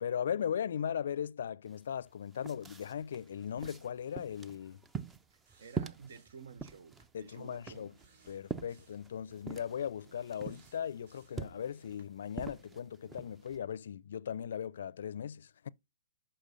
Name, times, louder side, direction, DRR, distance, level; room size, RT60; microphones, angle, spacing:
voice 1, 0.0-4.8 7.1-7.9 8.3-15.7, left 8 dB, 70° left, 0.4 m, -38 dB
sound 1, 1.7-1.8 2.1-13.6, right 5 dB, 10° right, 0.4 m, -45 dB
voice 2, 5.3-8.0, right 6 dB, 70° right, 0.9 m, -52 dB
sound 2, 5.5-6.5 7.0-7.1 8.0-9.1 10.4-11.5 12.0-12.1, right 4 dB, 55° right, 3.4 m, -66 dB
sound 3, 7.8-13.8, right 2 dB, 85° right, 2.5 m, -66 dB
6.6 x 5.7 x 6.3 m
hypercardioid pair, 155°, 0 cm